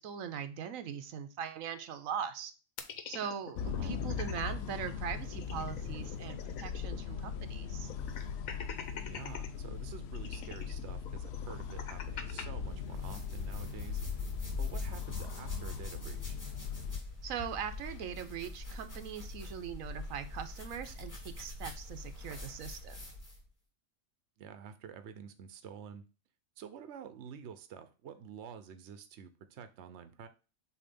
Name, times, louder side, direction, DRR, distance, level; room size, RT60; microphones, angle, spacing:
voice 1, 0.0-2.5 3.1-7.9 17.2-23.0, right 8 dB, 85° right, 9 dB, 1.1 m, -41 dB
sound 1, 2.8-4.5 4.9-5.0 5.2-7.0 7.3-7.4 7.9-9.5 10.1-12.4, left 7 dB, 90° left, 1.3 m, -45 dB
sound 2, 3.6-17.0, left 7 dB, 65° left, 0.7 m, -39 dB
voice 2, 3.7-4.0 9.0-14.0 14.6-16.4 24.4-26.0 26.6-30.3, right 7 dB, 60° right, 10 dB, 1.0 m, -49 dB
sound 3, 12.5-23.5, left 2 dB, 15° left, 2.5 m, -44 dB
7.0 x 2.8 x 5.2 m, 0.32 s
omnidirectional pair, 1.4 m